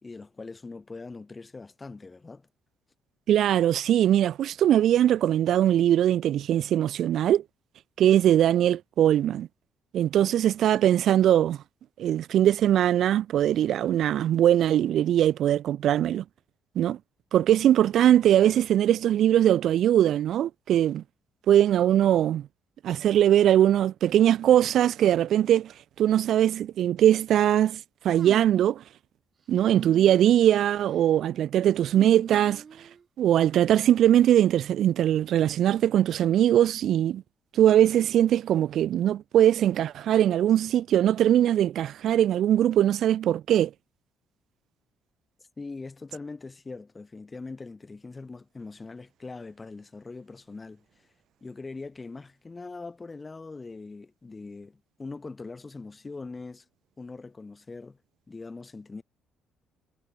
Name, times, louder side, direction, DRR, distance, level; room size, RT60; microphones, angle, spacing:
voice 1, 0.0-2.5 45.6-50.8 51.4-56.6 57.0-58.0 58.3-59.0, left 3 dB, 20° left, 0.9 m, -41 dB
voice 2, 3.3-7.4 8.0-9.5 9.9-11.6 12.0-16.2 16.8-17.0 17.3-21.0 21.5-22.5 22.8-25.7 26.0-27.8 28.0-28.8 29.5-32.6 33.2-37.2 37.5-43.7, right 11 dB, 60° right, 0.4 m, -21 dB
sound 1, 28.1-28.8 29.6-30.2 30.6-31.0 31.9-33.0, right 6 dB, 35° right, 1.4 m, -43 dB
cardioid pair, 130°, 0 cm